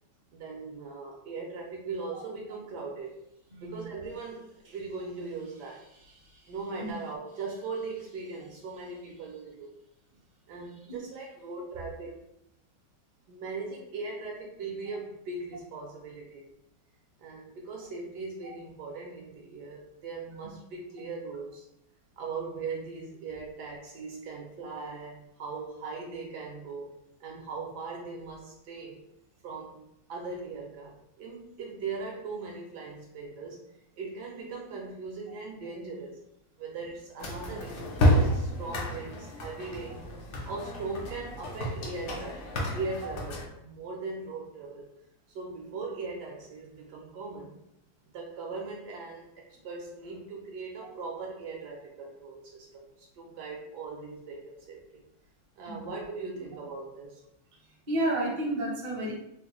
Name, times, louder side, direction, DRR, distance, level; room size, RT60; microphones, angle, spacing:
voice 1, 0.3-3.2 3.6-9.7 10.5-12.2 13.3-16.5 17.2-21.6 22.2-29.0 29.4-29.8 30.1-33.6 34.0-36.2 36.6-40.1 40.5-42.5 42.7-44.9 45.3-47.5 48.1-55.0 55.6-57.2, right 4 dB, 75° right, -1 dB, 1.1 m, -39 dB
voice 2, 3.5-3.8 6.8-6.9 10.9-11.0 55.7-55.9 57.9-59.1, right 1 dB, 40° right, -4 dB, 0.6 m, -31 dB
sound 1, 37.2-43.5, equal, 80° left, 0.6 m, -30 dB
3.6 x 2.2 x 3.0 m, 0.79 s
omnidirectional pair, 2.1 m